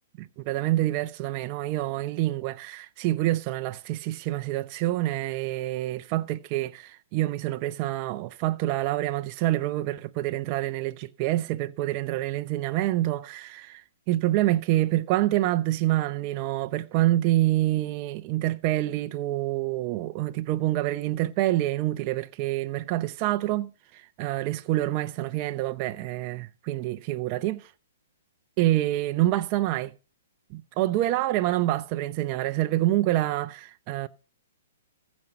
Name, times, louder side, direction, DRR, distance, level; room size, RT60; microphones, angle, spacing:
voice 1, 0.5-27.7 28.6-29.9 30.5-34.1, right 15 dB, 35° right, 0.6 m, -27 dB
15.0 x 5.3 x 6.9 m
hypercardioid pair, 140°, 0 cm